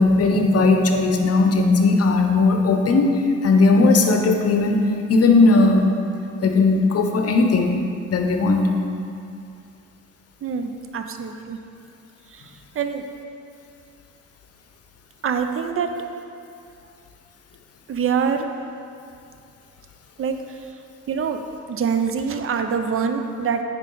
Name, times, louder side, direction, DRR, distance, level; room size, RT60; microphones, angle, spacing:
voice 1, 0.0-5.9 6.4-7.8 8.1-8.7, left 3 dB, 55° left, 3 dB, 0.9 m, -17 dB
voice 2, 10.4-11.6 12.3-12.4 12.8-13.0 15.2-15.9 17.9-18.5 20.2-20.4 21.1-21.4 21.7-23.6, right 6 dB, 45° right, 6 dB, 0.6 m, -24 dB
9.0 x 4.8 x 3.9 m, 2.5 s
cardioid pair, 90°, 30 cm